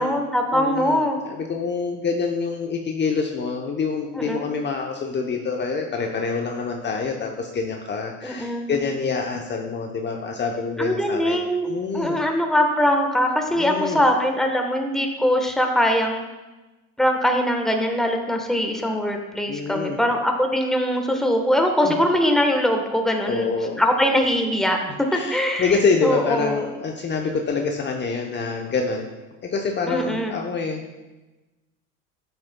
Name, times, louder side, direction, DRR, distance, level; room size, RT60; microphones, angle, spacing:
voice 1, 0.0-1.2 4.2-4.5 8.2-8.7 10.8-11.7 11.9-16.2 17.0-23.5 23.8-24.8 25.3-25.7 26.0-26.6 29.9-30.4, equal, ahead, 3 dB, 1.2 m, -22 dB
voice 2, 0.5-12.2 13.6-14.0 19.5-20.0 21.8-21.9 23.2-23.8 24.9-29.1 29.4-31.0, left 4 dB, 25° left, 2 dB, 0.9 m, -26 dB
10.5 x 8.0 x 2.3 m, 1.1 s
hypercardioid pair, 75°, 39 cm